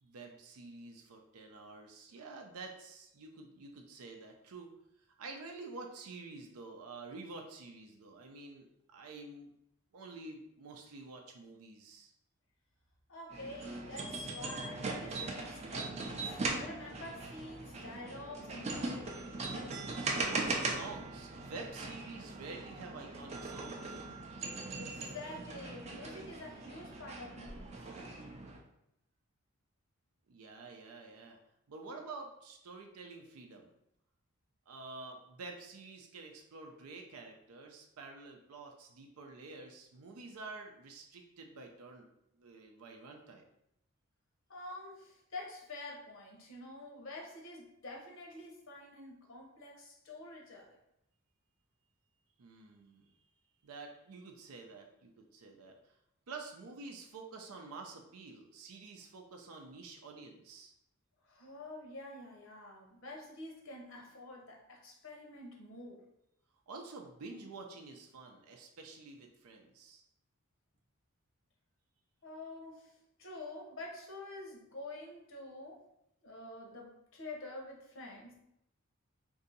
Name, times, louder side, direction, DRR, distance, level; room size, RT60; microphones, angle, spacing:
voice 1, 0.0-4.7 5.2-9.5 9.9-12.1 20.3-24.1 30.3-31.4 31.7-33.7 34.7-42.1 42.4-43.5 52.4-53.1 53.6-55.9 56.3-60.7 66.7-70.0, right 3 dB, 85° right, 3 dB, 0.5 m, -49 dB
voice 2, 13.1-19.8 24.8-27.7 44.5-50.8 61.2-66.0 72.2-75.8 76.2-78.4, left 2 dB, 60° left, 0 dB, 0.8 m, -48 dB
sound 1, 13.3-28.6, right 3 dB, 30° right, 0.4 m, -40 dB
2.7 x 2.6 x 3.9 m, 0.79 s
head